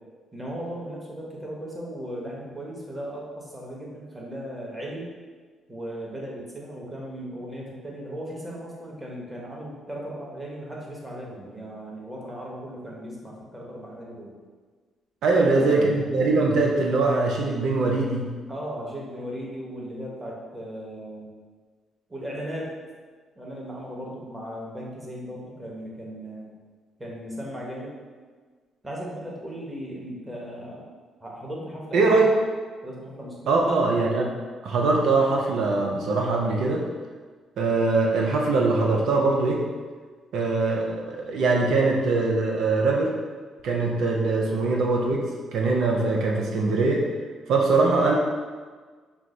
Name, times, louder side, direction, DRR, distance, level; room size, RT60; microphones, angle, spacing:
voice 1, 0.3-5.1 5.7-14.3 15.4-16.0 18.5-21.3 22.1-22.8 23.4-26.5 27.0-28.0 28.8-30.9 31.2-32.3 32.8-33.6, equal, 15° right, -4 dB, 1.1 m, -37 dB
voice 2, 15.2-18.3 31.9-32.3 33.5-34.3 34.6-36.9 37.6-39.7 40.3-43.2 43.6-47.1 47.5-48.1, right 3 dB, 75° right, -1 dB, 0.5 m, -22 dB
6.1 x 2.0 x 3.8 m, 1.5 s
cardioid pair, 90°, 0 cm